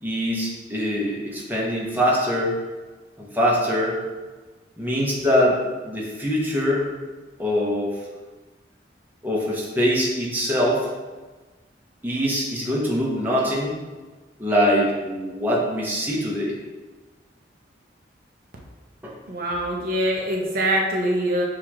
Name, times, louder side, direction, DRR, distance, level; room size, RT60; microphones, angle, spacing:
voice 1, 0.0-2.6 3.2-4.0 4.8-6.9 7.4-8.0 9.2-10.9 12.0-13.7 14.4-16.6 19.0-19.2, equal, 10° right, -5 dB, 0.7 m, -23 dB
voice 2, 19.3-21.4, right 1 dB, 55° right, -1 dB, 0.6 m, -23 dB
6.1 x 2.4 x 2.9 m, 1.3 s
head